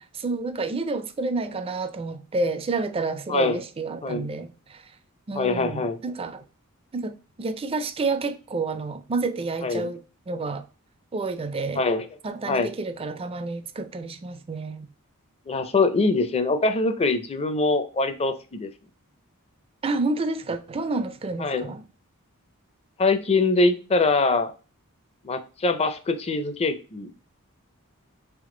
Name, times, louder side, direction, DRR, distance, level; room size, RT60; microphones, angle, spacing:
voice 1, 0.2-4.8 5.3-6.4 6.9-10.6 11.1-11.8 12.2-14.9 19.8-21.8, right 3 dB, 25° right, 0.4 m, -29 dB
voice 2, 3.3-3.6 4.0-4.3 5.4-6.0 9.6-9.9 11.7-12.1 12.5-12.7 15.5-18.7 21.4-21.7 23.0-24.5 25.2-27.3, left 3 dB, 30° left, 0.5 m, -23 dB
3.6 x 3.1 x 3.7 m
head